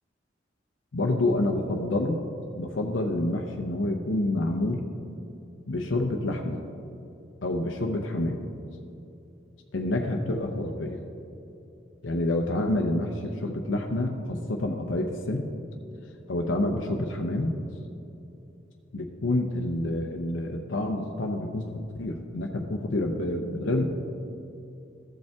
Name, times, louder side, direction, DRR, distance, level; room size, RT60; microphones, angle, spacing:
voice 1, 0.9-2.2 2.6-4.8 5.7-6.6 7.4-8.4 9.7-11.0 12.0-15.5 16.3-17.5 18.9-21.7 21.9-23.9, left 1 dB, 90° left, 2 dB, 0.6 m, -28 dB
14.0 x 5.3 x 3.5 m, 2.8 s
head